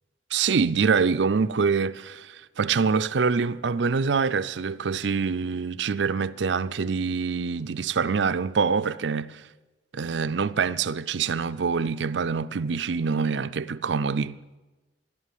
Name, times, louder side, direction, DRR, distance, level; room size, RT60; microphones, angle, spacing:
voice 1, 0.3-9.4 9.9-14.4, right 5 dB, 75° right, 0.5 m, -25 dB
13.0 x 11.5 x 9.2 m
head